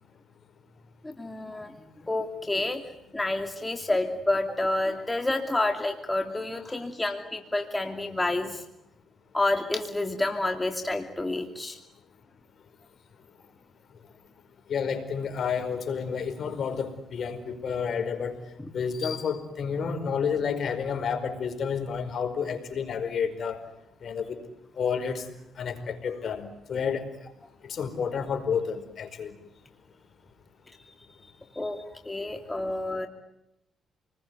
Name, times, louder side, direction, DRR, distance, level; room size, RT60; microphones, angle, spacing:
voice 1, 1.0-1.7 2.0-2.8 3.1-8.6 9.3-11.8 18.6-18.7 31.5-33.1, left 2 dB, 15° left, 4 dB, 2.8 m, -29 dB
voice 2, 14.7-18.4 18.7-23.6 24.0-24.4 24.8-25.3 25.6-27.0 27.6-29.4, left 6 dB, 55° left, 8 dB, 4.9 m, -30 dB
29.0 x 20.5 x 9.5 m, 0.84 s
cardioid pair, 90°, 0 cm